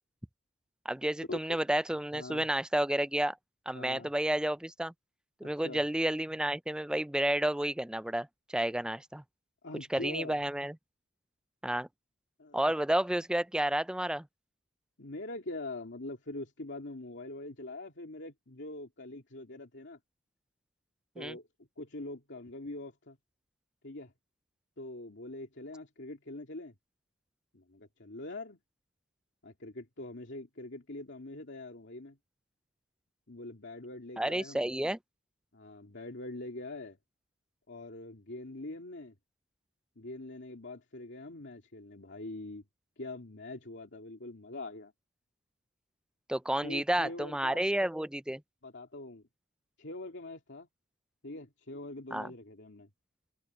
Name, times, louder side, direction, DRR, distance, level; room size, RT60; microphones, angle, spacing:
voice 1, 0.9-3.4 3.7-4.9 5.4-9.2 9.9-10.8 11.6-11.9 12.5-14.3 21.2-21.4 34.2-35.0 46.3-48.4 52.1-52.3, right 1 dB, 5° right, 0.4 m, -31 dB
voice 2, 2.1-2.5 3.7-4.1 5.4-5.8 9.6-10.4 12.4-12.7 15.0-20.0 21.1-21.5 21.8-23.2 23.8-24.1 24.8-26.7 27.5-28.6 29.4-32.2 33.3-34.8 35.5-37.0 37.7-39.1 40.0-42.6 43.0-44.9 46.6-47.6 48.6-49.2 49.8-50.7 51.2-52.9, left 2 dB, 65° left, 2.7 m, -43 dB
head